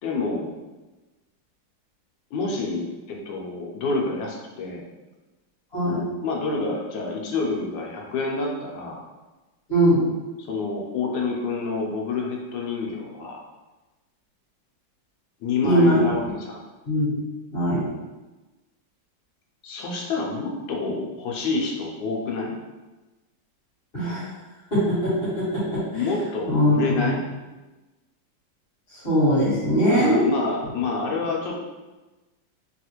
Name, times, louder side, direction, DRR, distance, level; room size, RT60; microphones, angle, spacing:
voice 1, 0.0-0.5 2.3-4.9 6.2-9.0 10.5-13.4 15.4-16.6 19.6-22.5 25.9-27.2 29.9-31.6, left 3 dB, 90° left, -1 dB, 1.3 m, -28 dB
voice 2, 5.7-6.0 9.7-10.0 15.6-16.3 16.8-17.2 17.5-17.9 23.9-24.3 24.7-26.0 26.5-27.1 28.9-30.3, equal, 35° left, -10 dB, 1.5 m, -21 dB
3.4 x 2.4 x 2.9 m, 1.1 s
omnidirectional pair, 2.0 m